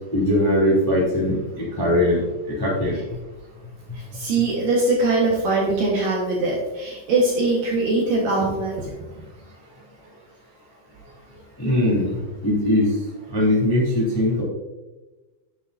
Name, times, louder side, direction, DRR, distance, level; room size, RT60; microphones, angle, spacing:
voice 1, 0.1-2.2 2.6-3.0 11.6-12.9 13.3-14.4, left 1 dB, 10° left, -5 dB, 1.7 m, -20 dB
voice 2, 3.9-8.9, right 2 dB, 60° right, -3 dB, 2.7 m, -22 dB
9.9 x 9.8 x 2.7 m, 1.1 s
omnidirectional pair, 5.2 m